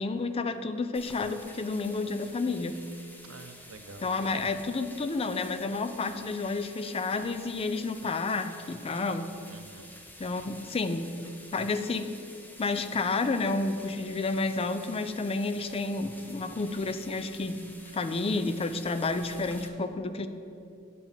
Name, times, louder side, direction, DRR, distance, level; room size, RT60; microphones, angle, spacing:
voice 1, 0.0-2.8 4.0-9.3 10.2-11.1 11.5-12.1 12.6-17.6 17.9-20.3, left 3 dB, 25° left, 10 dB, 0.4 m, -30 dB
sound 1, 0.9-19.7, left 1 dB, 10° left, 0.8 m, -50 dB
voice 2, 3.2-4.6 9.5-9.9, right 3 dB, 70° right, 7 dB, 0.7 m, -47 dB
8.8 x 4.5 x 7.3 m, 2.6 s
head